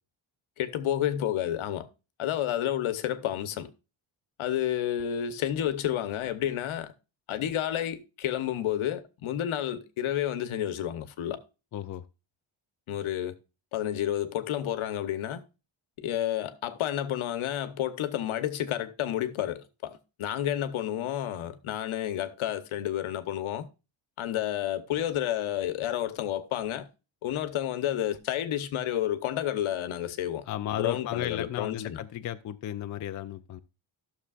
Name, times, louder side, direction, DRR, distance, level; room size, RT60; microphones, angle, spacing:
voice 1, 0.6-1.9 2.2-3.7 4.4-6.9 7.3-11.4 12.9-13.3 13.7-15.4 16.0-23.7 24.2-26.9 27.2-30.4 30.7-32.0, left 11 dB, 85° left, 1.1 m, -30 dB
voice 2, 11.7-12.0 30.5-33.6, left 12 dB, 40° left, 0.4 m, -34 dB
14.0 x 6.5 x 2.4 m
wide cardioid pair, 170°, 47 cm